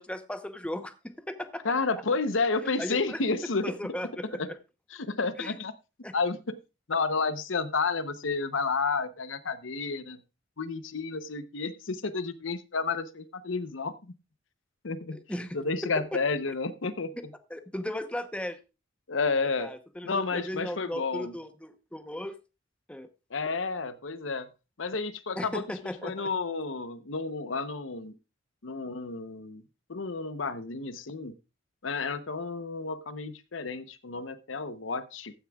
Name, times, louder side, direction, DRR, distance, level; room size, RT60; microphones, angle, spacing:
voice 1, 0.0-1.6 2.8-4.4 5.4-5.6 6.0-6.1 15.1-15.6 15.8-16.2 17.5-18.6 19.6-22.3 22.9-23.1 25.4-26.3, left 1 dB, 5° left, 9 dB, 0.8 m, -36 dB
voice 2, 1.6-3.7 4.3-4.5 4.9-5.7 6.1-6.6 6.9-10.2 10.6-14.1 14.8-15.2 15.5-17.2 19.1-19.7 20.0-21.3 23.3-24.5 24.8-28.1 28.6-29.6 29.9-31.3 31.8-35.3, left 4 dB, 75° left, 12 dB, 0.8 m, -31 dB
15.0 x 9.6 x 2.3 m, 0.28 s
head